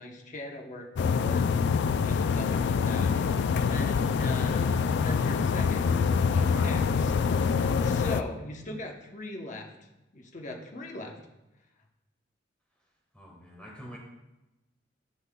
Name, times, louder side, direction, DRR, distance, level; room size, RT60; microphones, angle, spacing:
voice 1, 0.0-1.5 2.0-3.3 3.6-5.9 6.3-7.2 7.5-9.7 10.1-11.2, left 2 dB, 40° left, 1 dB, 0.9 m, -40 dB
sound 1, 1.0-8.2, left 5 dB, 60° left, 0.3 m, -25 dB
voice 2, 6.3-6.7 7.6-8.0 13.1-14.0, equal, 5° left, -2 dB, 1.5 m, -46 dB
11.5 x 5.6 x 2.3 m, 0.98 s
head